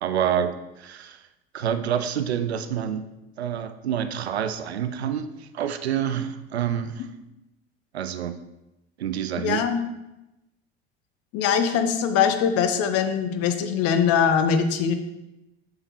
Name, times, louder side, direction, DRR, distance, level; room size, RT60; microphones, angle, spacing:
voice 1, 0.0-1.2 1.5-3.1 3.4-7.1 7.9-8.4 9.0-9.6, right 9 dB, 90° right, 11 dB, 0.5 m, -27 dB
voice 2, 9.4-9.8 11.3-14.9, left 7 dB, 50° left, 8 dB, 0.7 m, -22 dB
6.5 x 5.8 x 3.0 m, 0.94 s
hypercardioid pair, 70°, 31 cm